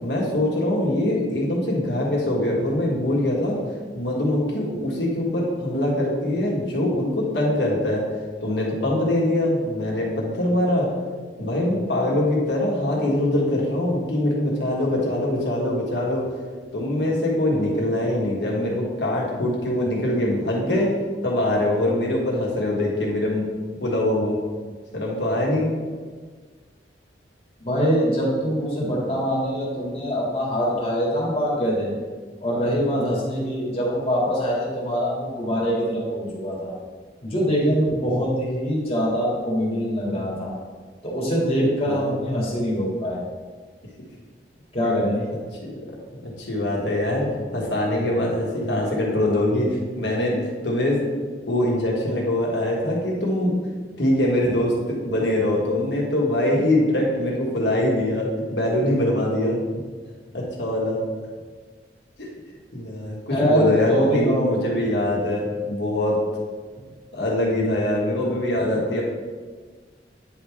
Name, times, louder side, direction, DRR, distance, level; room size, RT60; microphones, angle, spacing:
voice 1, 0.0-3.6 3.9-8.1 8.4-10.9 11.4-16.3 16.7-20.9 21.2-23.4 23.8-24.4 24.9-25.7 41.8-42.1 45.6-50.4 50.6-51.0 51.5-53.5 54.0-59.6 60.3-61.0 62.2-62.3 62.7-66.2 67.1-69.0, left 1 dB, 75° left, -3 dB, 1.5 m, -23 dB
voice 2, 27.6-31.9 32.4-36.7 37.2-40.5 41.0-43.2 44.7-45.2 63.3-64.6, equal, 35° left, -5 dB, 1.8 m, -23 dB
9.4 x 3.5 x 3.2 m, 1.5 s
head